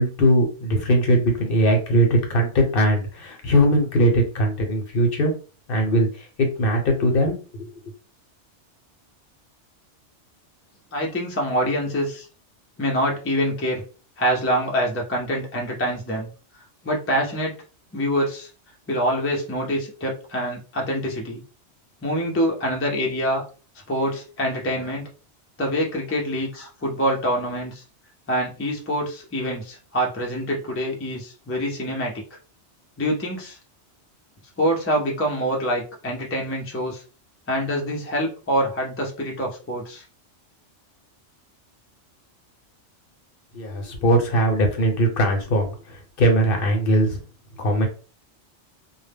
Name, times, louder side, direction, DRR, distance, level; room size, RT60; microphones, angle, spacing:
voice 1, 0.0-5.3 5.7-7.7 43.5-47.2 47.6-47.9, equal, 60° left, 3 dB, 0.8 m, -20 dB
voice 2, 10.9-12.3 12.8-13.8 14.2-16.3 16.8-17.5 17.9-18.5 18.9-21.4 22.0-23.4 23.9-25.1 25.6-27.8 28.3-32.2 33.0-33.6 34.6-37.0 37.5-40.0, equal, 20° left, -1 dB, 0.4 m, -25 dB
2.1 x 2.0 x 3.4 m, 0.36 s
omnidirectional pair, 1.2 m